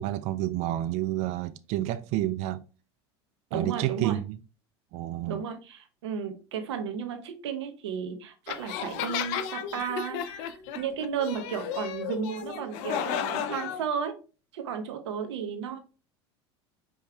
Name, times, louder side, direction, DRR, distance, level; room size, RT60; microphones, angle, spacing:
voice 1, 0.0-2.6 3.5-4.4 4.9-5.4, right 14 dB, 50° right, 0.4 m, -29 dB
voice 2, 3.5-4.2 5.3-14.1 14.5-15.8, right 7 dB, 85° right, 1.0 m, -34 dB
sound 1, 8.5-13.8, left 9 dB, 60° left, 0.6 m, -33 dB
5.2 x 3.2 x 3.2 m
hypercardioid pair, 90°, 14 cm